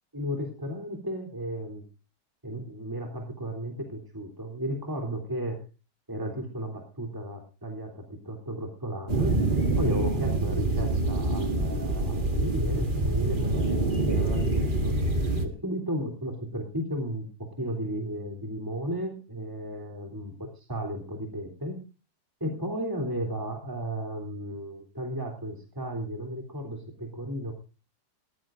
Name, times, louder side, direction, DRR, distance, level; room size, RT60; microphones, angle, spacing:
voice 1, 0.1-1.8 2.4-5.6 6.1-9.4 9.8-14.9 15.4-21.8 22.4-27.5, equal, 10° right, 2 dB, 3.3 m, -34 dB
sound 1, 9.1-15.5, right 2 dB, 30° right, 1.8 m, -26 dB
21.0 x 15.0 x 2.6 m, 0.32 s
omnidirectional pair, 1.9 m